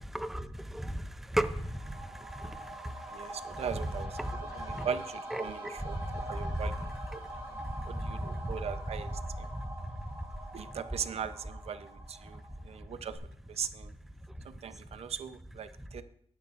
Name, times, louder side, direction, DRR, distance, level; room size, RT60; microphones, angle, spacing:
voice 1, 0.2-2.0 2.3-2.6 4.2-4.3 4.7-4.9 5.3-5.7 6.4-6.5 8.4-8.5 9.5-9.6, right 1 dB, 5° right, 10 dB, 0.5 m, -34 dB
Shimmer Vox C high, 1.5-12.8 13.1-13.2, right 1 dB, 25° right, 5.7 m, -44 dB
voice 2, 3.1-4.2 4.5-7.2 7.5-7.6 7.9-9.1 9.4-9.5 10.5-13.2 13.5-13.9 14.4-16.0, right 7 dB, 70° right, 11 dB, 0.6 m, -39 dB
19.0 x 9.8 x 2.5 m, 0.66 s
wide cardioid pair, 165°, 11 cm